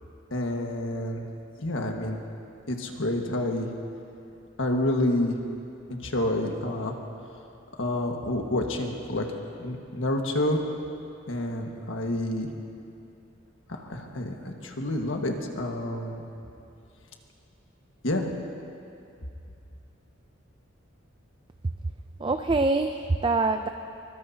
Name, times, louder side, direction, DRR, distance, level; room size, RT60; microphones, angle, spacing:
voice 1, 0.3-1.2 1.6-2.2 2.7-3.7 4.6-5.4 5.9-6.9 7.8-9.2 9.6-10.6 11.3-12.5 13.7-16.2 18.0-18.2, left 1 dB, 70° left, 2 dB, 1.6 m, -28 dB
voice 2, 22.2-23.7, right 3 dB, 25° right, 7 dB, 0.4 m, -24 dB
23.5 x 21.5 x 2.8 m, 2.6 s
head